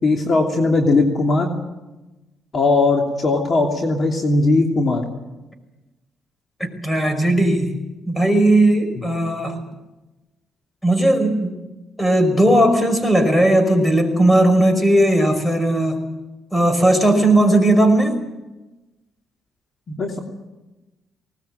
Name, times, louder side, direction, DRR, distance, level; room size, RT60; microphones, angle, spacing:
voice 1, 0.0-1.5 2.5-5.0 19.9-20.2, left 3 dB, 45° left, 2 dB, 2.9 m, -18 dB
voice 2, 6.6-7.7 8.1-9.6 10.8-11.5 12.0-16.0 16.5-18.2, right 1 dB, 10° left, 8 dB, 5.5 m, -17 dB
20.0 x 19.0 x 9.0 m, 1.1 s
cardioid pair, 90°, 0 cm